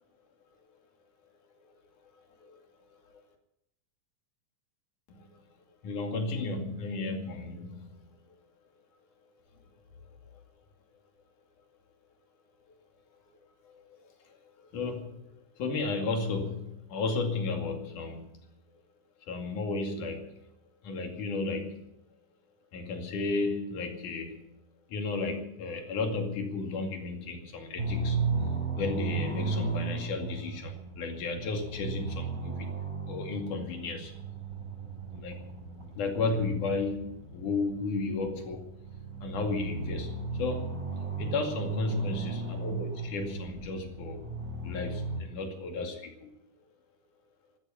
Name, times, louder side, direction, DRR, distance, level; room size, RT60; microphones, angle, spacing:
voice 1, 5.8-8.4 13.3-18.6 19.3-20.5 20.8-22.0 22.7-24.6 24.9-28.2 28.8-32.7 33.1-34.3 35.1-35.4 35.9-38.7 39.2-40.9 41.2-44.3 44.6-46.3, left 3 dB, 85° left, 3 dB, 3.9 m, -34 dB
sound 1, 27.8-45.2, right 3 dB, 25° right, 7.4 m, -35 dB
13.0 x 13.0 x 8.7 m, 0.82 s
omnidirectional pair, 3.5 m